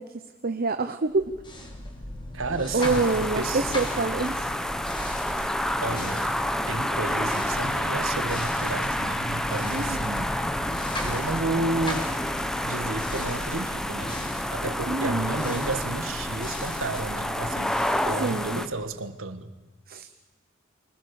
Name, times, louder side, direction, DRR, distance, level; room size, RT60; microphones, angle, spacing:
voice 1, 0.0-1.3 2.7-4.5 9.7-10.2 14.9-15.4 18.2-18.6 19.9-20.1, right 3 dB, 45° right, 9 dB, 0.9 m, -27 dB
sound 1, 1.1-19.0, left 1 dB, 25° left, 3.4 m, -38 dB
voice 2, 2.3-3.7 5.8-6.3 6.7-10.3 11.0-12.2 12.6-14.1 14.5-17.8 18.0-19.5, right 2 dB, 65° right, 10 dB, 1.6 m, -32 dB
sound 2, 2.8-18.7, left 1 dB, 5° left, 1.1 m, -29 dB
24.5 x 19.5 x 7.1 m, 1.2 s
head